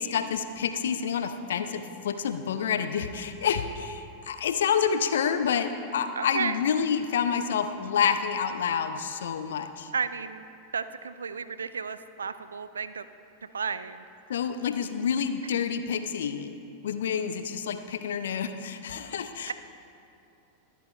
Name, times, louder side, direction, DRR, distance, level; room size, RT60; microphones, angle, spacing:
voice 1, 0.0-9.9 14.3-16.5 16.8-19.5, left 7 dB, 60° left, 9 dB, 0.7 m, -28 dB
voice 2, 6.1-6.6 9.9-10.4 10.7-13.0 13.5-14.1 19.5-19.6, right 6 dB, 70° right, 13 dB, 0.4 m, -33 dB
24.0 x 8.4 x 3.3 m, 2.7 s
figure-of-eight pair, 90°, 0 cm